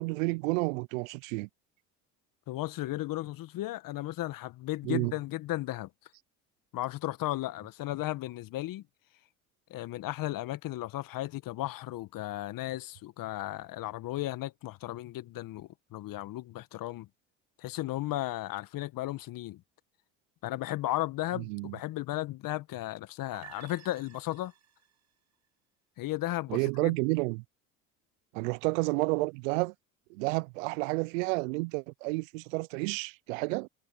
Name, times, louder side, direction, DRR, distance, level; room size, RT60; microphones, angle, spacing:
voice 1, 0.0-1.5 4.8-5.1 21.4-21.8 26.5-27.4 28.3-29.7 30.1-33.7, right 27 dB, 75° right, 0.6 m, -30 dB
voice 2, 2.5-5.9 6.7-8.8 9.7-17.1 17.6-19.6 20.4-24.5 26.0-26.9, left 16 dB, 55° left, 1.7 m, -35 dB
sound 1, 23.3-25.0, right 9 dB, 45° right, 5.9 m, -52 dB
hypercardioid pair, 70°, 39 cm